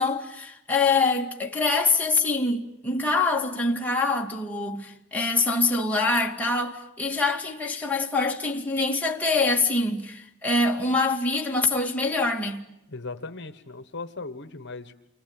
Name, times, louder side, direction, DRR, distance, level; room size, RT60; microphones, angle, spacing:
voice 1, 0.0-12.7, left 3 dB, 10° left, 2.3 m, -25 dB
voice 2, 12.9-14.9, left 3 dB, 55° left, 1.4 m, -37 dB
29.0 x 22.5 x 9.0 m
head